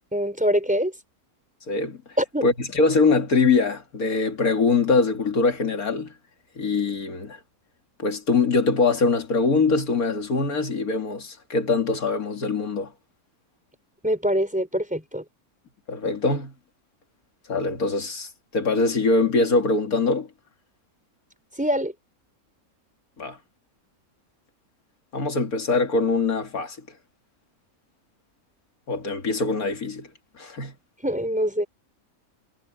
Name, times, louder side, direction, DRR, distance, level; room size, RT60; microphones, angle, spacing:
voice 1, 0.1-0.9 2.2-2.4 14.0-15.2 21.6-21.9 31.0-31.7, equal, 5° right, 4.4 m, -24 dB
voice 2, 1.7-2.0 2.4-6.1 6.6-7.4 8.0-12.9 15.9-16.5 17.5-20.3 23.2-23.4 25.1-26.8 28.9-30.1 30.4-30.7, left 3 dB, 80° left, 2.8 m, -23 dB
omnidirectional pair, 1.5 m